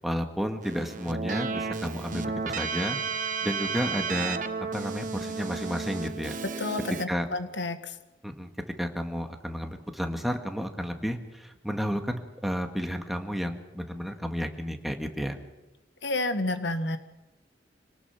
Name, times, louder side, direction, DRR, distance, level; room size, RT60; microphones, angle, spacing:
voice 1, 0.0-3.0 3.4-4.4 4.7-6.4 7.1-7.3 8.2-8.5 8.8-15.4, equal, ahead, 4 dB, 1.8 m, -32 dB
Keyboard (musical), 0.6-7.1, right 5 dB, 45° right, 1.2 m, -33 dB
voice 2, 6.6-8.0 16.0-17.0, left 2 dB, 80° left, 9 dB, 1.6 m, -30 dB
26.0 x 19.0 x 5.9 m, 0.99 s
head